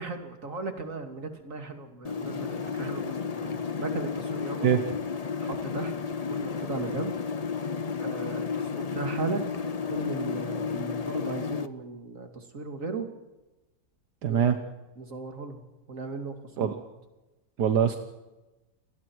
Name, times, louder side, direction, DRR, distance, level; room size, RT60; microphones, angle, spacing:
voice 1, 0.0-4.7 5.4-5.9 6.3-7.1 8.0-9.4 9.9-13.1 14.3-14.5 15.0-15.6 15.9-16.8, right 4 dB, 50° right, 5 dB, 3.0 m, -36 dB
sound 1, 2.0-11.7, left 5 dB, 40° left, 0.5 m, -32 dB
voice 2, 14.2-14.6 16.6-16.7 17.6-18.0, right 8 dB, 75° right, 7 dB, 1.7 m, -23 dB
30.0 x 20.0 x 4.7 m, 1.1 s
omnidirectional pair, 1.8 m